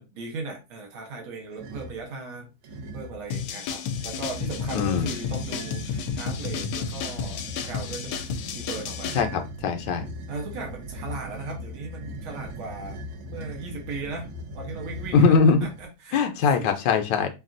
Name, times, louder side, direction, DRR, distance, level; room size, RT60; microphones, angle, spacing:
voice 1, 0.0-8.2 8.5-9.2 10.3-13.0 13.3-14.3 14.5-16.2 16.6-16.7, right 3 dB, 85° right, 1 dB, 1.8 m, -37 dB
sound 1, 1.5-2.0 2.6-3.3 3.9-15.9, right 1 dB, 65° right, 1.0 m, -39 dB
sound 2, 3.3-9.2, left 6 dB, 90° left, 1.4 m, -32 dB
voice 2, 4.7-5.1 9.1-10.0 15.1-15.7 16.1-17.3, left 5 dB, 70° left, 6 dB, 1.3 m, -21 dB
5.9 x 2.4 x 2.5 m, 0.27 s
omnidirectional pair, 2.2 m